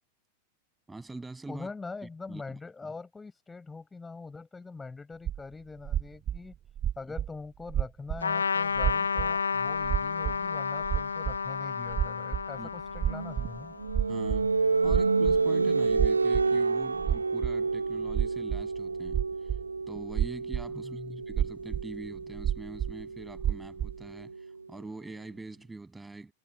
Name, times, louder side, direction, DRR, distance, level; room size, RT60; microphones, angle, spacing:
voice 1, 0.9-1.7 2.3-2.6 12.6-12.7 14.1-14.5 14.8-19.2 19.9-26.3, right 3 dB, 10° right, 7.8 m, -44 dB
voice 2, 1.5-6.5 7.0-13.7 20.8-21.2, left 4 dB, 10° left, 5.9 m, -43 dB
sound 1, 5.3-5.4 5.9-7.3 7.6-8.2 8.8-9.4 9.8-10.4 10.8-11.4 11.9-12.6 12.9-13.6 13.9-15.4 15.9-16.6 17.0-17.6 18.1-18.8 19.1-19.6 20.0-20.7 21.3-23.0 23.3-24.0, right 10 dB, 25° right, 0.6 m, -30 dB
Trumpet, 8.2-14.1, left 5 dB, 75° left, 1.6 m, -31 dB
sound 2, 13.0-24.5, right 4 dB, 80° right, 0.8 m, -30 dB
figure-of-eight pair, 90°, 0 cm